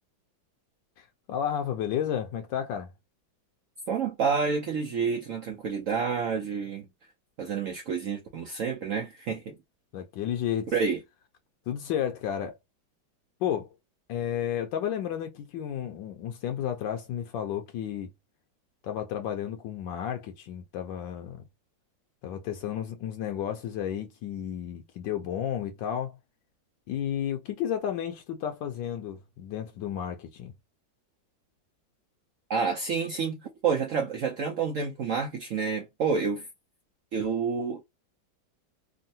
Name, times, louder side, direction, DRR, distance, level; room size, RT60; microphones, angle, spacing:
voice 1, 1.0-2.9 9.9-10.7 11.7-12.6 13.4-13.7 14.1-18.1 18.8-21.4 22.2-26.2 26.9-30.5, left 9 dB, 75° left, 1.2 m, -32 dB
voice 2, 3.9-6.9 7.4-9.6 10.7-11.0 32.5-36.5 37.1-37.8, right 5 dB, 80° right, 0.7 m, -29 dB
3.6 x 2.1 x 2.6 m
omnidirectional pair, 2.1 m